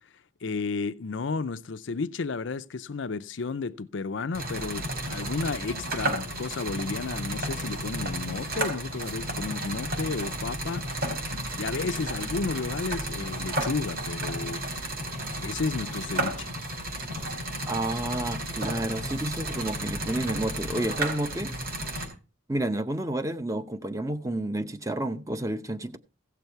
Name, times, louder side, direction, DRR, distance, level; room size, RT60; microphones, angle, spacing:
voice 1, 0.4-10.8 11.5-14.6 15.4-16.5, left 4 dB, 75° left, 0.6 m, -32 dB
sound 1, 4.3-22.1, right 1 dB, 50° right, 4.6 m, -33 dB
voice 2, 17.7-21.5 22.5-26.0, right 1 dB, 15° right, 0.8 m, -30 dB
16.0 x 6.8 x 4.6 m
head